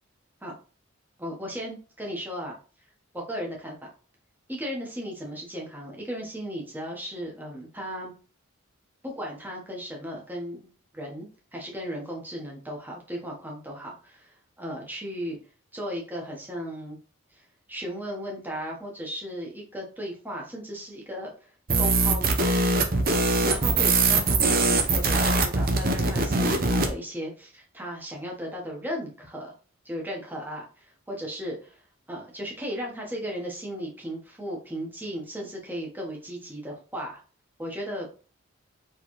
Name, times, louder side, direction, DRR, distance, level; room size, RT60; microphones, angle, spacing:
voice 1, 1.2-2.6 3.1-3.9 4.5-8.1 9.0-15.4 15.7-17.0 17.3-21.3 21.8-22.3 23.4-29.5 29.8-31.8 32.1-37.2 37.6-38.1, equal, 10° right, -1 dB, 1.1 m, -36 dB
sound 1, 21.7-26.9, right 3 dB, 45° right, 0.7 m, -22 dB
4.4 x 3.3 x 3.0 m, 0.38 s
head